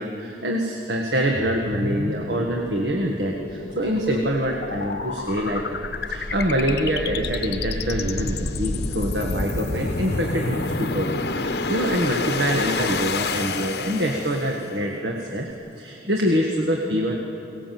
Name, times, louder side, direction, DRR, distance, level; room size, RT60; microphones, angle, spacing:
voice 1, 0.0-5.8 6.1-15.5 15.8-17.1, equal, 70° right, 0 dB, 1.6 m, -25 dB
sound 1, 1.3-14.7, left 3 dB, 65° left, 0.9 m, -29 dB
23.5 x 18.5 x 7.6 m, 2.7 s
head